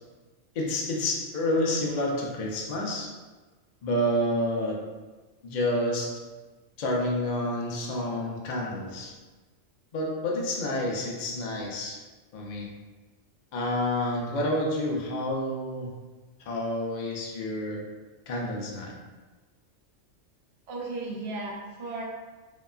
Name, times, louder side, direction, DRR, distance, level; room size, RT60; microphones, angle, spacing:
voice 1, 0.5-3.1 3.8-4.8 5.4-6.1 6.8-9.1 9.9-12.0 12.3-12.7 13.5-15.9 16.5-17.8 18.3-18.9, left 1 dB, 65° left, -2 dB, 0.4 m, -29 dB
voice 2, 20.7-22.0, right 2 dB, 55° right, -3 dB, 0.5 m, -35 dB
2.8 x 2.3 x 2.2 m, 1.3 s
omnidirectional pair, 1.3 m